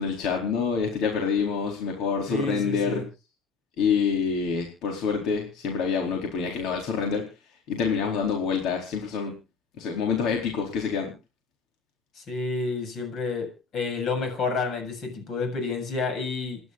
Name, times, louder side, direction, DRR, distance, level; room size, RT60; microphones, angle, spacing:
voice 1, 0.0-3.0 3.8-7.3 7.7-9.3 9.8-11.1, left 6 dB, 70° left, 4.3 m, -26 dB
voice 2, 2.3-3.0 12.2-16.6, left 4 dB, 55° left, 7.6 m, -30 dB
27.5 x 11.5 x 2.6 m
cardioid pair, 105°, 0 cm